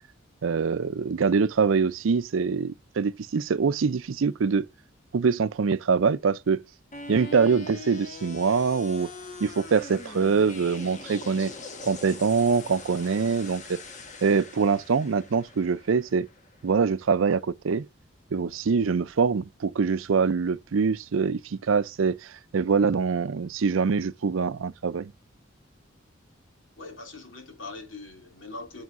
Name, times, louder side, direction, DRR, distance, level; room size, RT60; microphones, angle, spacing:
voice 1, 0.4-4.6 5.1-6.6 7.1-9.1 9.4-11.5 11.8-13.8 14.2-16.3 16.6-17.9 18.3-25.1, right 5 dB, 80° right, 0.5 m, -24 dB
sound 1, 6.9-17.0, left 2 dB, 40° left, 1.2 m, -42 dB
voice 2, 26.8-28.8, left 3 dB, 75° left, 2.6 m, -42 dB
9.4 x 6.3 x 2.5 m
head